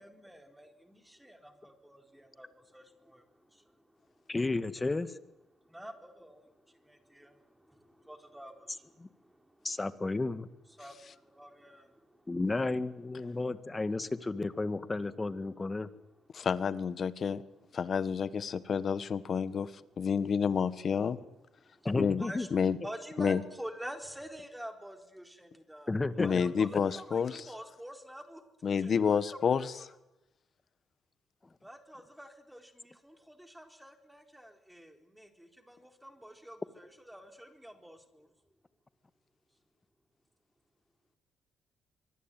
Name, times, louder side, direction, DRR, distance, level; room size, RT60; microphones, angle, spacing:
voice 1, 0.0-4.2 5.5-9.7 10.7-12.4 16.3-16.5 22.2-22.5 22.8-28.4 28.8-29.7 31.6-38.3, equal, 5° right, 5 dB, 4.1 m, -48 dB
voice 2, 4.3-5.2 9.0-9.1 9.6-10.5 12.3-15.9 21.9-22.5 25.9-26.4, left 2 dB, 20° left, 12 dB, 1.8 m, -32 dB
voice 3, 16.3-17.4 17.7-19.7 20.0-21.2 22.0-22.2 22.5-22.8 23.2-23.4 26.2-27.4 28.6-29.7, left 6 dB, 50° left, 14 dB, 1.6 m, -29 dB
24.0 x 24.0 x 9.3 m, 0.96 s
cardioid pair, 90°, 0 cm